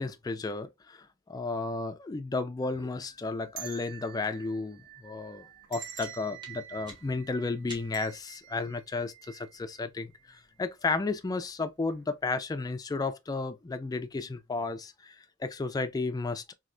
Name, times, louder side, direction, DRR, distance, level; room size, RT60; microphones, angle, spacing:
voice 1, 0.0-16.5, left 3 dB, 20° left, 0.3 m, -33 dB
sound 1, 2.6-9.8 10.2-10.3 11.2-11.5 11.8-12.0, right 10 dB, 60° right, 0.5 m, -48 dB
sound 2, 5.5-8.2, equal, 20° right, 1.3 m, -50 dB
3.2 x 2.7 x 2.5 m
head